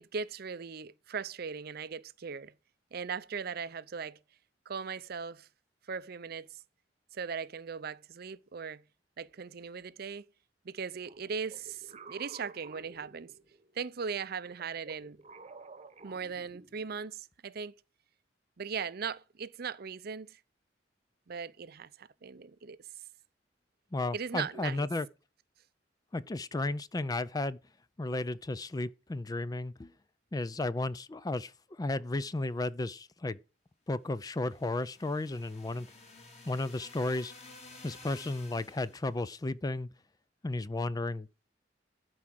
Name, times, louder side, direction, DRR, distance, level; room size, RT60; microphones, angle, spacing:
voice 1, 0.0-2.5 2.9-4.2 4.7-5.5 5.9-6.5 7.1-8.8 9.2-10.3 10.6-13.3 13.7-15.2 16.0-17.7 18.6-20.4 21.3-22.8 24.1-24.9, right 6 dB, 60° right, 0.6 m, -39 dB
sound 1, 11.0-13.8 14.4-17.1, right 3 dB, 35° right, 1.0 m, -52 dB
voice 2, 23.9-25.1 26.1-27.6 28.0-29.9 30.3-33.4 33.9-35.9 36.5-37.3 37.8-39.9 40.4-41.5, left 2 dB, 20° left, 0.4 m, -34 dB
sound 2, 34.2-39.1, left 2 dB, 40° left, 2.8 m, -53 dB
12.5 x 4.7 x 7.6 m
head